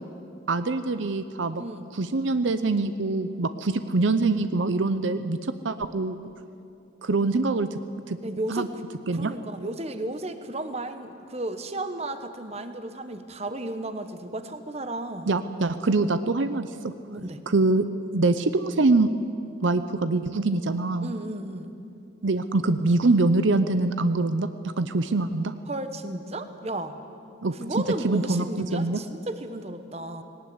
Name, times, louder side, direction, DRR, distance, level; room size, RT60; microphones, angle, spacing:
voice 1, 0.5-1.6 1.9-6.2 7.0-7.8 8.1-8.2 8.5-8.7 9.1-9.3 15.3-16.9 17.5-17.9 18.1-19.1 19.6-21.1 22.2-24.5 24.8-25.5 27.4-29.0, right 3 dB, 70° right, 11 dB, 0.7 m, -24 dB
voice 2, 1.6-1.9 8.2-8.7 9.1-15.3 17.1-17.4 21.0-21.7 25.7-27.0 27.6-30.2, right 2 dB, 30° right, 9 dB, 1.2 m, -34 dB
19.5 x 18.5 x 9.6 m, 2.6 s
head